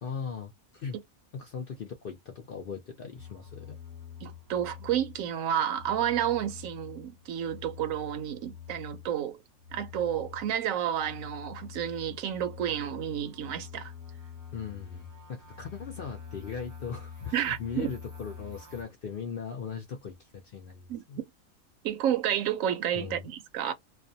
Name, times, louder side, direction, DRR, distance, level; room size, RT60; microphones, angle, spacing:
voice 1, 0.0-1.0 1.3-3.8 14.5-21.2 23.0-23.3, left 6 dB, 60° left, 0.6 m, -39 dB
sound 1, 3.2-5.4 5.7-9.2 9.5-18.8, left 7 dB, 25° right, 0.4 m, -46 dB
voice 2, 4.2-9.4 9.7-13.9 17.3-17.9 20.9-21.0 21.8-23.7, right 10 dB, 75° right, 1.0 m, -30 dB
2.4 x 2.2 x 2.6 m
omnidirectional pair, 1.4 m